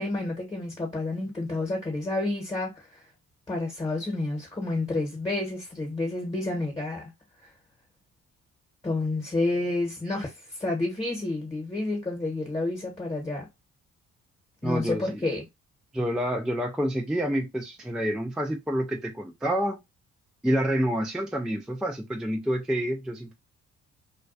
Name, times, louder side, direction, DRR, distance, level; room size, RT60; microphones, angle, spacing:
voice 1, 0.0-3.0 3.5-7.1 7.4-7.5 8.8-10.3 10.6-13.4 14.6-15.4, left 2 dB, 20° left, 1.0 m, -29 dB
voice 2, 14.6-15.2 15.9-19.8 20.4-23.3, equal, ahead, 0.3 m, -28 dB
2.3 x 2.2 x 2.4 m
cardioid pair, 90°, 30 cm